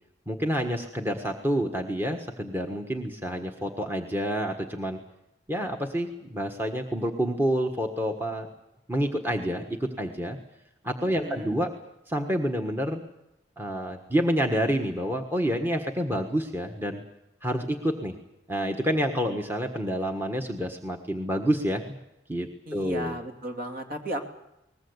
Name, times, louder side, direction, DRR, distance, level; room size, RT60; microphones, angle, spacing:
voice 1, 0.3-5.0 5.5-8.5 8.9-10.4 10.8-11.7 12.1-13.0 13.6-17.0 17.4-18.1 18.5-22.0 22.3-23.2, equal, 10° right, 4 dB, 1.4 m, -28 dB
voice 2, 11.0-11.6 22.7-24.2, right 1 dB, 50° right, 3 dB, 2.9 m, -34 dB
22.0 x 20.0 x 8.1 m, 0.85 s
head